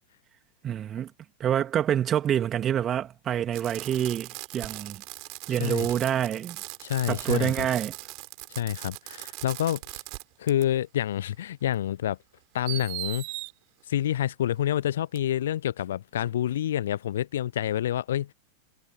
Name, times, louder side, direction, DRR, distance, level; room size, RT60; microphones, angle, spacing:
voice 1, 0.6-1.1 1.4-5.0 5.5-6.6 7.1-7.9, right 10 dB, 25° right, 3.1 m, -27 dB
Fireworks, 3.5-10.2 10.5-10.6 11.7-11.8 12.7-13.5 15.2-15.3, right 36 dB, 45° right, 7.7 m, -39 dB
voice 2, 5.5-5.9 6.8-7.7 8.5-9.8 10.4-12.2 12.5-13.2 13.9-18.3, left 11 dB, 60° left, 0.9 m, -28 dB
figure-of-eight pair, 90°, 0 cm